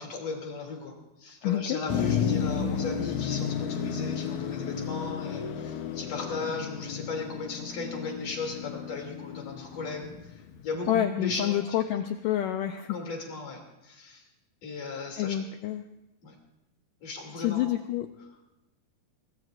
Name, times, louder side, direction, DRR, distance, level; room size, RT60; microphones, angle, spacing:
voice 1, 0.0-11.8 12.9-14.3 14.6-15.4 16.2-16.4 17.0-17.8, left 3 dB, 45° left, 0 dB, 3.7 m, -36 dB
voice 2, 1.4-1.8 10.9-13.0 15.2-15.8 17.4-18.1, left 12 dB, 85° left, 7 dB, 1.9 m, -28 dB
Motor vehicle (road), 1.9-10.9, left 7 dB, 70° left, 1.9 m, -32 dB
24.5 x 20.0 x 2.6 m, 0.95 s
omnidirectional pair, 4.6 m